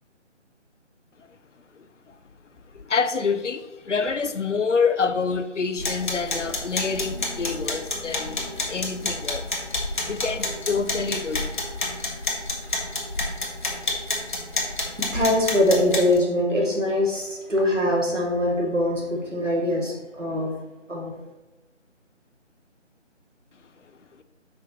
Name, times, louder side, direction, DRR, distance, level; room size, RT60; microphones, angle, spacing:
voice 1, 2.7-9.5 10.1-11.5, left 5 dB, 75° left, 10 dB, 0.7 m, -27 dB
sound 1, 5.8-16.2, left 2 dB, 40° left, 1.0 m, -29 dB
voice 2, 15.0-20.5 20.9-21.1, left 1 dB, 80° right, -2 dB, 2.1 m, -23 dB
6.1 x 5.6 x 3.0 m, 1.1 s
figure-of-eight pair, 155°, 37 cm